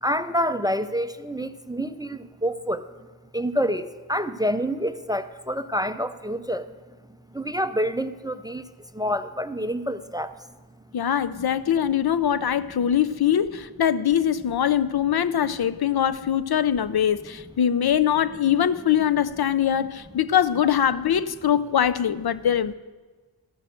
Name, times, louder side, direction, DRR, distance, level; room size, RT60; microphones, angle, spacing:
voice 1, 0.0-2.9 3.3-6.7 7.3-8.6 8.9-10.3, equal, 10° right, 12 dB, 0.5 m, -27 dB
voice 2, 10.9-22.7, left 9 dB, 50° left, 15 dB, 0.6 m, -22 dB
13.5 x 6.5 x 7.9 m, 1.3 s
cardioid pair, 50°, 48 cm